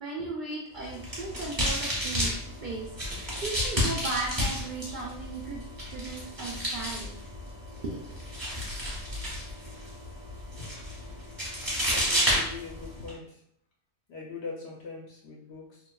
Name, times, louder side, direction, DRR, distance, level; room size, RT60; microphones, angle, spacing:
voice 1, 0.0-2.4 2.6-5.6 5.9-7.1 7.8-8.2, right 3 dB, 60° right, -4 dB, 0.5 m, -36 dB
sound 1, 0.8-13.1, equal, 20° right, 0.7 m, -32 dB
voice 2, 11.9-13.4 14.1-15.8, left 4 dB, 65° left, -3 dB, 0.8 m, -41 dB
2.9 x 2.3 x 2.2 m, 0.65 s
omnidirectional pair, 1.3 m